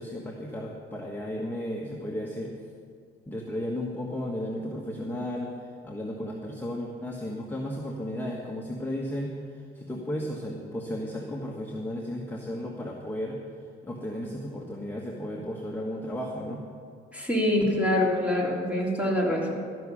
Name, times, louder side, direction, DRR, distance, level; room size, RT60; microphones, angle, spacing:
voice 1, 0.0-2.5 3.3-13.4 13.8-16.7, equal, 10° left, -2 dB, 1.4 m, -34 dB
voice 2, 17.1-19.5, left 1 dB, 5° right, -3 dB, 3.2 m, -25 dB
13.5 x 6.2 x 8.4 m, 2.2 s
cardioid pair, 90°, 20 cm